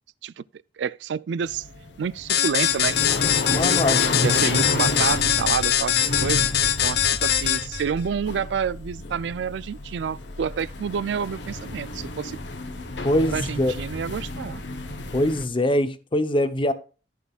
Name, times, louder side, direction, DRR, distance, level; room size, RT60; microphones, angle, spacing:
voice 1, 0.8-1.7 2.0-3.0 4.2-6.5 6.8-12.4 13.3-14.6, right 7 dB, 75° right, 0.4 m, -28 dB
sound 1, 1.4-15.5, left 2 dB, 80° left, 1.2 m, -31 dB
sound 2, 2.3-7.8, left 10 dB, 65° left, 0.7 m, -22 dB
voice 2, 3.5-4.1 13.0-13.7 15.1-16.7, left 1 dB, 30° left, 0.8 m, -23 dB
14.5 x 6.2 x 2.4 m
head